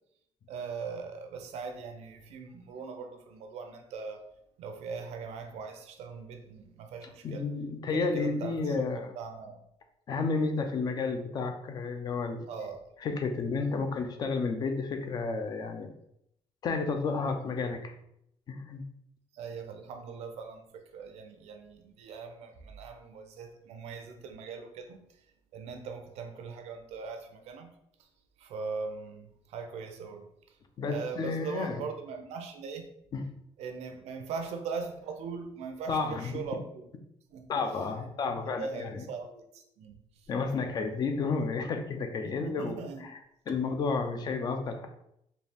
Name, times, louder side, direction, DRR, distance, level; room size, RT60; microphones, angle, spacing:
voice 1, 0.5-4.2 4.6-7.5 7.9-9.6 12.5-12.9 19.3-25.1 25.5-27.7 28.4-30.3 30.8-32.9 33.6-36.9 37.3-37.5 38.0-40.3 42.4-43.0, right 5 dB, 80° right, 5 dB, 0.6 m, -40 dB
voice 2, 7.2-9.1 10.1-12.4 13.0-15.9 16.6-17.9 18.5-18.8 30.8-31.8 33.1-33.3 35.9-36.4 37.5-39.0 40.3-43.2 43.5-44.9, left 4 dB, 40° left, 6 dB, 0.5 m, -31 dB
4.3 x 2.4 x 3.4 m, 0.76 s
cardioid pair, 160°, 11 cm